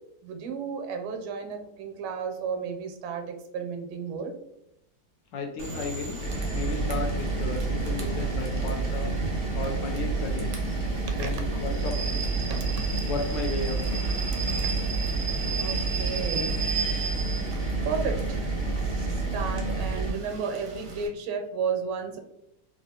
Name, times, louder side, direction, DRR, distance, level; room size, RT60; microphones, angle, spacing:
voice 1, 0.2-4.3 11.1-11.3 12.5-12.6 14.5-14.7 15.6-16.5 17.5-18.5 18.9-22.2, right 5 dB, 85° right, 5 dB, 1.4 m, -33 dB
voice 2, 5.3-6.2 6.5-9.1 9.5-10.5 11.1-11.9 13.0-13.8, left 3 dB, 75° left, 2 dB, 1.1 m, -34 dB
Rain / Train, 5.6-21.1, right 4 dB, 60° right, 0.8 m, -36 dB
sound 1, 6.2-20.1, right 3 dB, 35° left, 0.7 m, -29 dB
3.6 x 2.4 x 2.7 m, 0.81 s
omnidirectional pair, 2.2 m